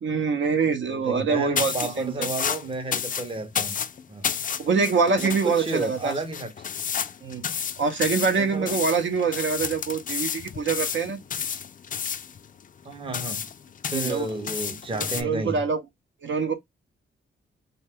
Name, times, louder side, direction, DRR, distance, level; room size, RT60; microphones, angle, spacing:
voice 1, 0.0-2.3 4.6-6.1 7.2-7.4 7.8-11.2 13.9-14.3 15.2-15.8 16.2-16.5, right 5 dB, 65° right, 0.7 m, -25 dB
voice 2, 0.9-3.8 4.1-4.3 5.2-6.5 8.4-8.8 12.8-13.5 13.9-15.6, right 2 dB, 25° right, 0.7 m, -32 dB
sound 1, 1.5-15.2, left 7 dB, 40° left, 0.4 m, -31 dB
2.8 x 2.2 x 3.4 m
cardioid pair, 80°, 21 cm